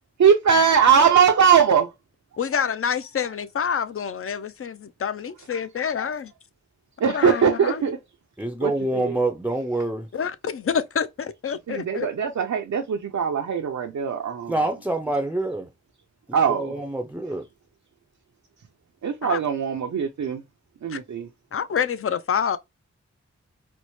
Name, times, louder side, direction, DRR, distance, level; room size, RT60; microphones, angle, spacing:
voice 1, 0.2-1.9 7.0-8.0 8.6-9.2 11.7-14.7 16.3-16.8 19.0-20.4 20.8-21.3, right 7 dB, 70° right, 0.6 m, -21 dB
voice 2, 2.4-6.3 7.0-7.8 10.1-12.1 19.2-19.4 20.9-21.0 21.5-22.6, left 7 dB, 50° left, 0.5 m, -27 dB
voice 3, 8.4-10.1 14.5-15.7 16.5-17.4, right 2 dB, 5° right, 0.5 m, -26 dB
4.4 x 2.1 x 3.0 m
cardioid pair, 50°, 29 cm